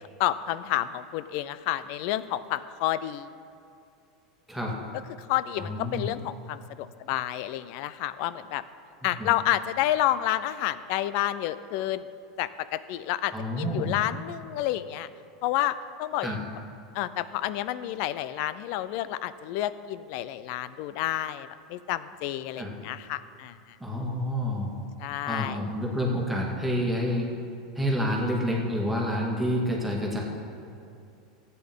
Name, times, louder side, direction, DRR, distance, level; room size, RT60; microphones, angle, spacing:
voice 1, 0.2-3.3 5.2-8.6 9.0-12.1 12.4-15.1 15.4-16.4 16.9-23.6 25.0-25.7, left 13 dB, 60° left, 15 dB, 0.4 m, -30 dB
voice 2, 5.6-6.1 9.2-9.3 13.3-14.0 16.2-16.4 22.6-22.7 23.8-24.7 25.2-27.3 27.8-30.2, equal, 5° right, -3 dB, 2.1 m, -28 dB
14.5 x 9.2 x 3.7 m, 2.5 s
supercardioid pair, 120°, 3 cm